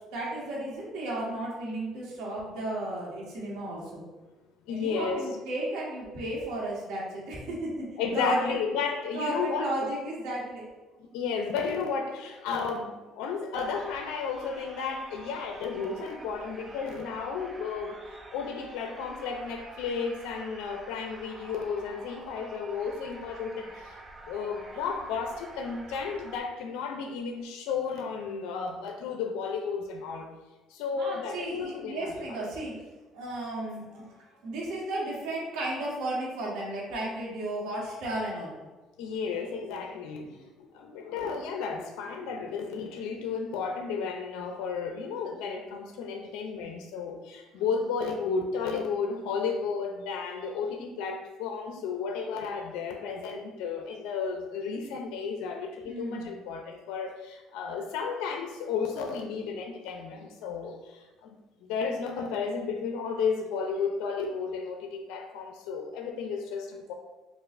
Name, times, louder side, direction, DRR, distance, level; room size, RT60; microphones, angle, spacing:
voice 1, 0.1-4.0 4.7-7.9 8.1-8.6 9.1-10.7 30.9-32.8 33.1-38.6 46.2-46.3 55.8-56.3, right 1 dB, 85° right, -4 dB, 1.4 m, -34 dB
voice 2, 4.7-5.2 8.0-9.7 11.1-18.0 18.3-24.0 24.3-30.3 30.7-32.1 39.0-40.4 40.7-61.4 61.7-66.9, left 5 dB, 90° left, 3 dB, 0.5 m, -33 dB
sound 1, 13.5-26.4, right 2 dB, 25° right, 0.6 m, -47 dB
6.6 x 2.4 x 2.5 m, 1.2 s
cardioid pair, 120°, 0 cm